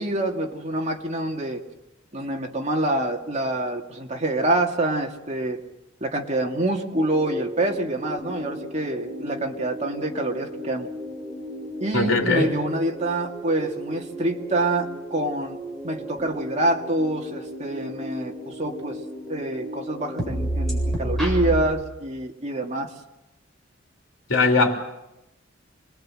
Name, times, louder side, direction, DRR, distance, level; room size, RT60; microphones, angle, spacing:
voice 1, 0.0-1.6 2.1-5.6 6.0-10.9 11.8-15.6 15.8-19.0 19.3-22.9, right 1 dB, 35° right, 1 dB, 2.4 m, -26 dB
sound 1, 6.9-21.6, right 1 dB, ahead, 7.8 m, -33 dB
voice 2, 11.9-12.6 24.3-24.7, left 3 dB, 80° left, 2 dB, 3.4 m, -20 dB
26.5 x 21.5 x 7.7 m, 0.92 s
head